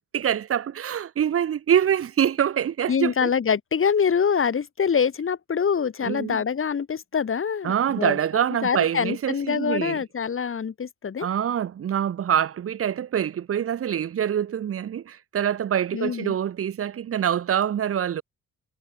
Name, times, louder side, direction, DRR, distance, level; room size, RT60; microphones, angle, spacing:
voice 1, 0.0-3.3 6.0-6.4 7.6-10.0 11.2-18.2, right 9 dB, 50° right, 1.1 m, -25 dB
voice 2, 2.9-8.2 8.6-11.3 15.9-16.3, left 6 dB, 45° left, 5.0 m, -25 dB
cardioid pair, 90°, 30 cm